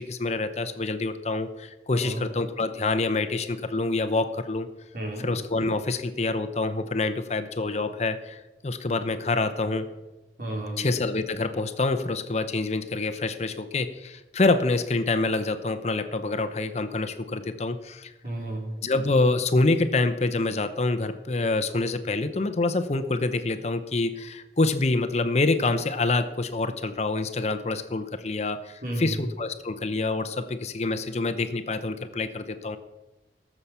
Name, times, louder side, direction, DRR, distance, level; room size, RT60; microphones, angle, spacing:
voice 1, 0.0-4.7 5.2-9.9 10.8-18.1 18.8-32.8, left 3 dB, 35° left, 9 dB, 0.7 m, -26 dB
voice 2, 1.9-2.2 4.9-5.3 10.4-10.8 18.2-18.7 28.8-29.2, right 1 dB, 50° right, -2 dB, 4.3 m, -32 dB
17.0 x 7.3 x 6.8 m, 1.1 s
head